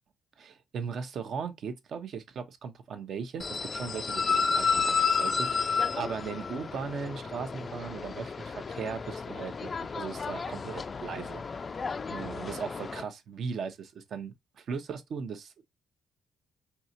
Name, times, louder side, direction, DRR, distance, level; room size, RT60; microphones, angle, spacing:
voice 1, 0.4-11.4 12.1-15.6, right 6 dB, 60° right, 0.8 m, -38 dB
sound 1, 3.4-13.0, left 5 dB, 35° left, 0.3 m, -31 dB
4.7 x 2.8 x 2.7 m
cardioid pair, 90°, 0 cm